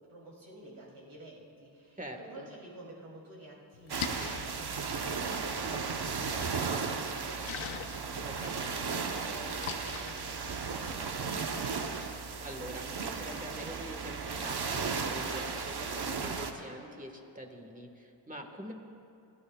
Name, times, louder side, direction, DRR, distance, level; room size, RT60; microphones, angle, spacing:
voice 1, 0.1-12.1, right 1 dB, 90° right, -4 dB, 3.1 m, -51 dB
voice 2, 2.0-2.5 8.2-8.8 12.4-18.7, equal, 15° right, 3 dB, 1.4 m, -45 dB
Splash splatter, 3.7-11.1, left 7 dB, 90° left, 0.8 m, -45 dB
sound 1, 3.9-16.5, right 5 dB, 55° right, 1.0 m, -35 dB
28.5 x 11.5 x 2.3 m, 2.6 s
cardioid pair, 70°, 46 cm